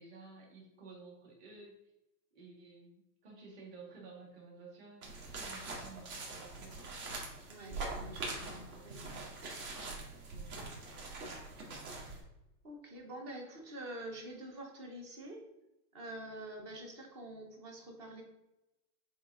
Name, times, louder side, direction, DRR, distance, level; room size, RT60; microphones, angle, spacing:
voice 1, 0.0-1.8 2.3-7.0 8.7-8.9 10.3-10.6, right 4 dB, 35° right, -3 dB, 1.9 m, -53 dB
sound 1, 5.0-12.2, right 3 dB, 60° right, 2.2 m, -43 dB
voice 2, 7.5-9.3 10.6-10.7 11.9-12.2 12.6-15.4 15.9-18.2, right 1 dB, 20° right, 2 dB, 0.5 m, -47 dB
7.2 x 3.6 x 3.6 m, 0.92 s
supercardioid pair, 175°, 49 cm